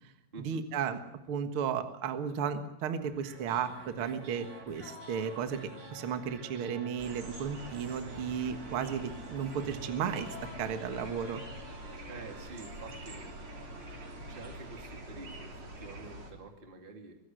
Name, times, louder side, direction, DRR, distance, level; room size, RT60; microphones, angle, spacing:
voice 1, 0.4-1.0 1.3-10.3 10.6-11.4, right 7 dB, 50° right, 7 dB, 1.7 m, -34 dB
sound 1, 3.0-15.2, right 3 dB, 80° right, 5.2 m, -51 dB
sound 2, 3.5-8.3 8.5-12.9 13.1-13.2, left 5 dB, 85° left, 5.2 m, -54 dB
sound 3, 7.0-16.3, right 1 dB, 35° right, 3.9 m, -45 dB
voice 2, 12.1-13.4 14.3-17.2, right 3 dB, 15° right, 3 dB, 2.2 m, -48 dB
23.5 x 16.0 x 7.8 m, 0.85 s
omnidirectional pair, 4.4 m